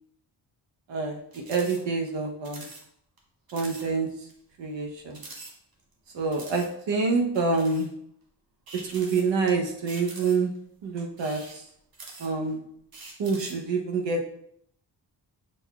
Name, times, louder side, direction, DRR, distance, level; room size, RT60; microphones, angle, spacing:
voice 1, 0.9-2.7 3.5-4.1 4.6-5.2 6.1-7.9 8.9-10.5 10.8-11.6 12.2-12.6 13.2-14.2, right 4 dB, 80° right, 2 dB, 0.9 m, -27 dB
sound 1, 1.3-1.8 2.1-2.2 2.4-2.8 3.2-3.3 3.5-3.9 4.3-4.4 5.1-5.9 6.3-6.7 7.3-7.9 8.7-9.5 9.9-10.6 11.1-12.5 12.9-13.6, right 3 dB, 55° right, 1.0 m, -44 dB
6.4 x 3.4 x 2.3 m, 0.70 s
cardioid pair, 80°, 43 cm